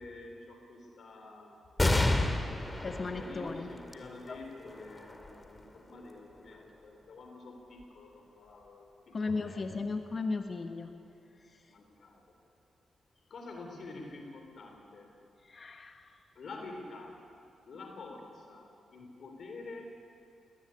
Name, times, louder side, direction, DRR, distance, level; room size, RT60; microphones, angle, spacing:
voice 1, 0.0-1.6 3.0-9.8 11.7-12.2 13.3-15.1 16.4-17.2 17.6-20.0, left 3 dB, 60° left, 3 dB, 3.7 m, -48 dB
sound 1, 1.8-8.7 9.3-9.4 10.5-11.1, left 2 dB, 20° left, 2.3 m, -34 dB
voice 2, 2.8-3.7 4.3-4.4 9.1-10.9 15.5-16.0, left 3 dB, 40° left, 6 dB, 1.2 m, -35 dB
21.0 x 18.0 x 9.8 m, 2.5 s
cardioid pair, 80°, 0 cm